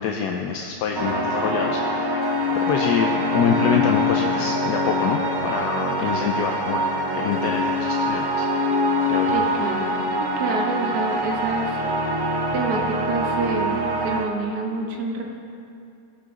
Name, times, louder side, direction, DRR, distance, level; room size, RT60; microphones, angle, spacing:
voice 1, 0.0-8.7 9.1-9.4, left 6 dB, 80° left, 3 dB, 1.2 m, -26 dB
sound 1, 1.0-14.3, left 1 dB, 30° right, 0.4 m, -24 dB
voice 2, 9.3-9.9 10.2-11.8 12.5-15.2, right 3 dB, 80° right, 1 dB, 1.6 m, -27 dB
16.5 x 6.7 x 3.7 m, 2.5 s
omnidirectional pair, 1.7 m